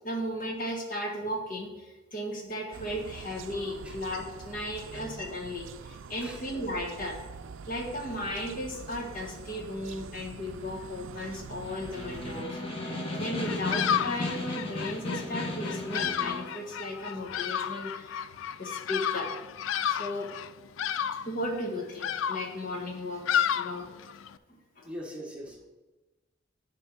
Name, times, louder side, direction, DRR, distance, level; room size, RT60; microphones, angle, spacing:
voice 1, 0.0-7.2 7.7-18.2 18.6-19.3 19.6-20.3 21.2-24.0 24.5-24.9, left 1 dB, 45° left, 1 dB, 1.4 m, -36 dB
sound 1, 2.7-12.4, right 5 dB, 85° right, 0.4 m, -45 dB
voice 2, 3.6-4.0 4.4-5.2 6.2-6.4 24.8-25.7, equal, 5° right, -2 dB, 1.3 m, -44 dB
Snare drum, 11.5-16.5, left 2 dB, 30° left, 1.4 m, -35 dB
Bird vocalization bird call bird song, 13.4-24.4, left 9 dB, 85° left, 0.4 m, -32 dB
10.5 x 3.7 x 6.1 m, 1.2 s
head